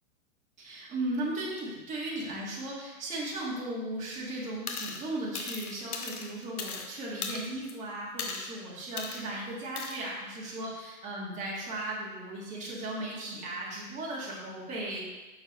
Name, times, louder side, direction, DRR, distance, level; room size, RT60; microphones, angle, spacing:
voice 1, 0.6-15.0, right 1 dB, 15° right, -5 dB, 1.5 m, -36 dB
sound 1, 4.7-5.0 5.3-6.9 7.2-7.7 8.2-8.5 9.0-9.2 9.8-10.0, left 5 dB, 85° left, 1.1 m, -37 dB
6.6 x 5.9 x 3.0 m, 1.2 s
hypercardioid pair, 150°, 43 cm